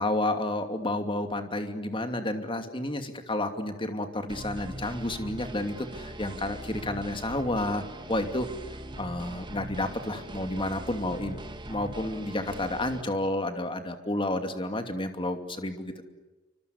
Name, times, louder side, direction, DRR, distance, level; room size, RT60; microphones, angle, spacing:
voice 1, 0.0-8.5 9.0-15.9, left 1 dB, 25° left, 6 dB, 2.7 m, -31 dB
sound 1, 4.3-13.0, right 1 dB, 25° right, 2.2 m, -41 dB
28.5 x 25.5 x 8.2 m, 1.2 s
head